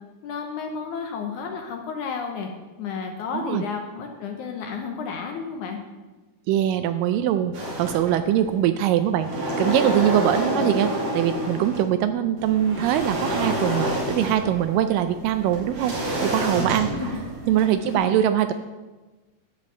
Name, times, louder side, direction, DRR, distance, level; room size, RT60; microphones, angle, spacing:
voice 1, 0.2-2.5 2.8-5.8 10.3-10.7 16.8-17.2 17.8-18.0, left 5 dB, 70° left, 3 dB, 2.0 m, -32 dB
voice 2, 6.5-9.3 9.6-16.0 16.2-16.9 17.5-18.5, right 11 dB, 80° right, 9 dB, 2.0 m, -22 dB
sound 1, 7.5-8.5 8.9-11.9 12.4-17.9, right 1 dB, 50° right, 3.5 m, -28 dB
11.5 x 5.2 x 8.2 m, 1.2 s
omnidirectional pair, 4.2 m